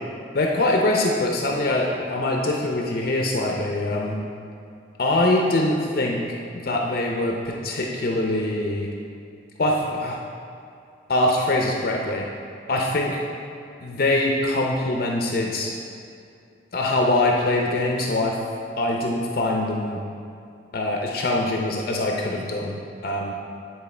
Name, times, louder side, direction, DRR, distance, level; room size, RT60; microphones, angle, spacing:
voice 1, 0.3-4.2 5.0-6.2 6.5-8.9 9.6-10.2 11.1-12.3 12.7-13.2 13.8-15.7 16.7-18.4 18.8-20.0 20.7-23.3, left 1 dB, 55° left, 0 dB, 0.6 m, -23 dB
9.3 x 3.8 x 4.3 m, 2.5 s
head